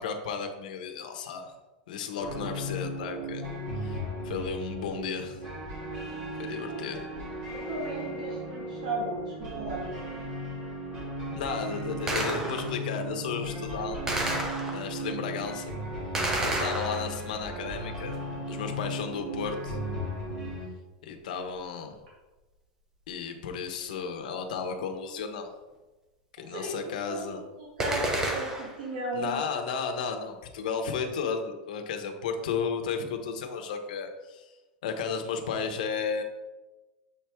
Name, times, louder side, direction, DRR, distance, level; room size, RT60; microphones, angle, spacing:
voice 1, 0.0-1.5 1.9-3.4 3.7-4.0 4.2-5.4 6.4-7.1 11.3-14.2 14.7-15.7 16.4-18.2 18.5-19.8 21.0-21.9 23.1-25.5 26.4-27.4 29.1-34.5 34.8-36.2, left 5 dB, 75° left, 5 dB, 1.0 m, -33 dB
sound 1, 2.2-20.7, equal, 40° right, 2.2 m, -36 dB
voice 2, 6.7-7.0 7.5-10.1 26.4-29.4, right 2 dB, 80° right, -5 dB, 1.9 m, -36 dB
Gunshot gunfire, 12.1-12.9 14.1-15.1 16.1-17.4 27.8-28.9, right 1 dB, 10° right, 0.7 m, -31 dB
7.2 x 4.5 x 3.6 m, 1.1 s
supercardioid pair, 170°, 5 cm